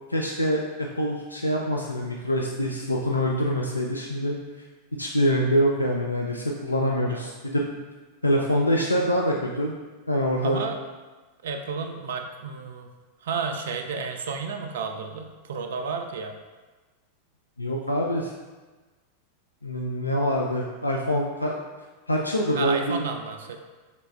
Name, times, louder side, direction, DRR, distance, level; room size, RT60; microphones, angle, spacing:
voice 1, 0.1-4.3 5.0-7.6 8.2-9.7 10.1-10.6 17.6-18.3 19.6-21.5 22.1-23.0, equal, 85° left, -1 dB, 0.3 m, -25 dB
voice 2, 10.4-10.8 11.4-12.9 13.2-16.3 22.5-23.6, right 5 dB, 60° right, 5 dB, 0.4 m, -31 dB
5.9 x 3.3 x 2.2 m, 1.3 s
figure-of-eight pair, 90°, 0 cm